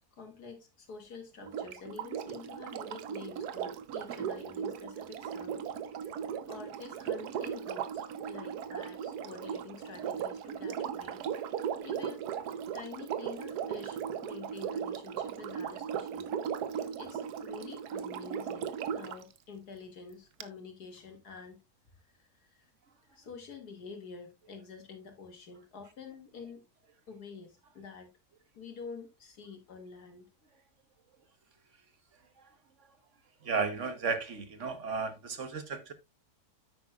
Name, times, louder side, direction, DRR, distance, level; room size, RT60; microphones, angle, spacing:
voice 1, 0.1-5.6 6.0-7.9 8.2-11.2 11.5-12.3 12.7-16.3 17.0-21.6 22.2-22.7 23.1-26.6 27.1-28.1 28.5-30.3, left 5 dB, 85° left, 2.6 m, -48 dB
Sink (filling or washing), 1.4-19.2 20.4-20.5, right 8 dB, 80° right, 1.3 m, -37 dB
voice 2, 33.4-35.9, right 4 dB, 55° right, 1.4 m, -34 dB
10.0 x 8.6 x 2.3 m
omnidirectional pair, 1.6 m